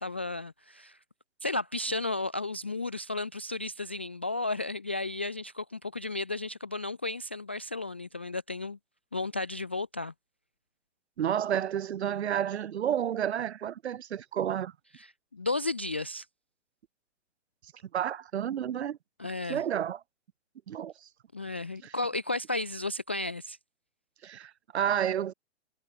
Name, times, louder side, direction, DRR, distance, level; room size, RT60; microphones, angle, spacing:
voice 1, 0.0-1.0 1.4-8.8 9.1-10.1 15.0-16.3 19.2-19.6 21.3-23.6, left 2 dB, 10° left, 0.4 m, -33 dB
voice 2, 11.2-14.7 17.9-19.0 19.4-20.0 20.7-21.1 21.8-21.9 24.2-25.3, right 9 dB, 60° right, 3.9 m, -30 dB
hypercardioid pair, 170°, 36 cm